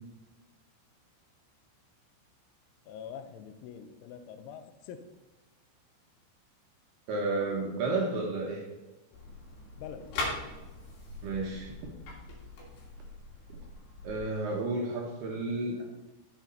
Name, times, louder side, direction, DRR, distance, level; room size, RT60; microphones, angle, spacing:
voice 1, 2.9-5.0 9.8-10.1, left 8 dB, 90° left, 8 dB, 3.6 m, -44 dB
voice 2, 7.1-8.6 11.2-11.9 14.0-15.8, right 2 dB, 70° right, -1 dB, 2.5 m, -32 dB
sound 1, 9.1-14.2, left 2 dB, 50° left, 4.0 m, -41 dB
10.5 x 8.2 x 4.4 m, 1.1 s
omnidirectional pair, 5.9 m